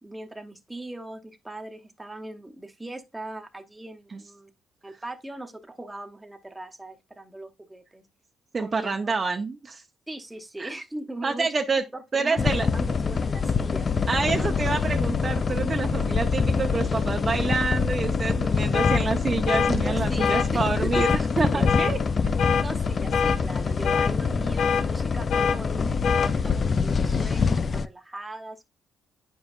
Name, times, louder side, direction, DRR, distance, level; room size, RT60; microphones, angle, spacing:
voice 1, 0.0-4.5 4.8-8.1 8.6-9.1 10.1-11.6 11.9-12.4 12.7-14.1 14.3-14.5 19.7-21.6 22.5-28.6, right 2 dB, 10° right, 0.9 m, -39 dB
voice 2, 8.5-9.8 10.6-10.7 11.2-11.8 12.1-12.7 14.1-22.0, right 4 dB, 35° right, 0.6 m, -27 dB
sound 1, 12.4-27.9, left 5 dB, 40° left, 0.3 m, -25 dB
sound 2, 18.7-19.0 19.5-19.7 20.2-20.5 20.9-21.2 21.7-21.9 22.4-22.7 23.1-23.4 23.8-24.1 24.6-24.8 25.3-25.6 26.0-26.3, left 6 dB, 75° left, 0.7 m, -24 dB
8.8 x 5.2 x 2.4 m
cardioid pair, 90°, 0 cm